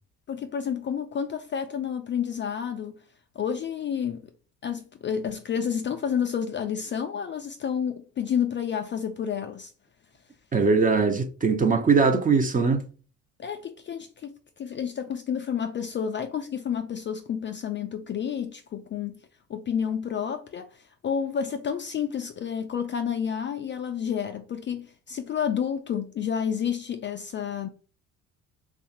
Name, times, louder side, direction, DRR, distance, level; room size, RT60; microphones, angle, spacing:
voice 1, 0.3-3.0 3.4-4.2 4.6-9.7 13.4-19.2 19.5-27.7, left 8 dB, 30° left, 0.4 m, -30 dB
voice 2, 10.5-12.9, right 4 dB, 20° right, 0.5 m, -21 dB
2.7 x 2.4 x 4.2 m
hypercardioid pair, 55°, 40 cm